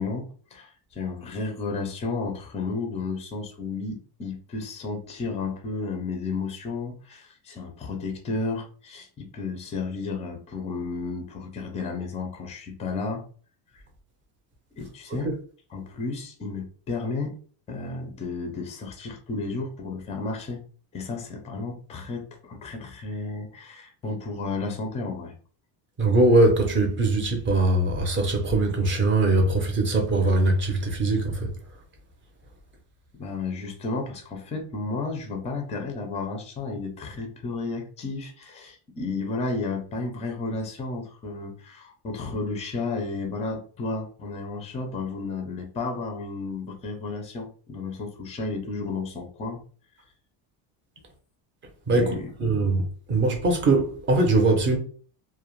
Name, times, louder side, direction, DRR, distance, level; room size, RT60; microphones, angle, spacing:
voice 1, 0.0-13.2 14.7-15.3 15.7-17.4 17.7-20.6 20.9-25.3 33.1-49.6 51.9-52.3, left 3 dB, 15° left, 0.4 m, -32 dB
voice 2, 26.0-31.5 51.9-52.8 53.1-54.8, right 2 dB, 25° right, 0.6 m, -21 dB
2.3 x 2.1 x 3.0 m
cardioid pair, 140°, 45 cm